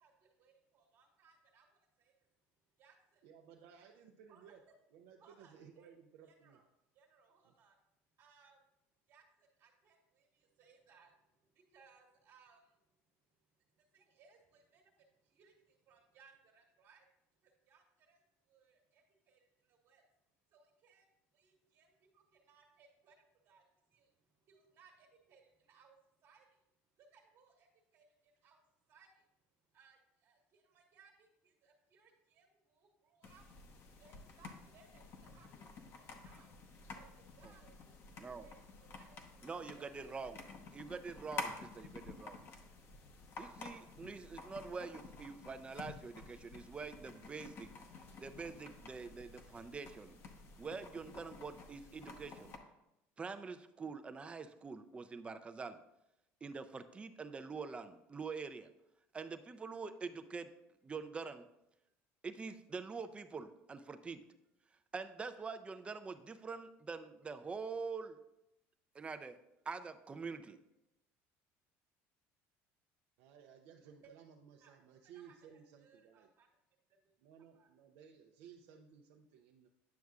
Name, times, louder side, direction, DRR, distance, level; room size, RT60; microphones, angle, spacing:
voice 1, 0.0-2.1 2.8-3.2 4.3-4.4 5.2-5.9 6.4-6.6 6.9-7.7 8.2-8.6 9.1-11.1 11.4-12.7 13.9-17.0 17.4-18.2 18.5-20.0 20.5-21.1 21.3-23.6 23.9-24.1 24.5-26.0 26.2-26.5 27.0-28.6 28.9-29.2 29.7-33.4 34.0-36.5 37.0-39.2 39.8-40.1 74.6-75.4 75.8-76.5 77.5-77.7, right 5 dB, 50° right, -1 dB, 1.3 m, -67 dB
voice 2, 3.2-4.6 4.9-6.6 7.4-7.6 73.2-76.3 77.2-79.7, right 7 dB, 80° right, 2 dB, 0.5 m, -59 dB
sound 1, 33.2-52.6, left 4 dB, 50° left, 0.8 m, -51 dB
voice 3, 38.2-38.5 39.4-40.4 40.7-42.4 43.4-47.7 48.2-50.2 50.6-52.5 53.2-55.8 56.4-58.7 59.1-60.5 60.8-61.5 62.2-64.2 64.9-68.2 68.9-69.4 69.7-70.6, right 4 dB, 20° right, 9 dB, 0.4 m, -45 dB
9.3 x 6.2 x 2.4 m, 0.87 s
cardioid pair, 115°, 5 cm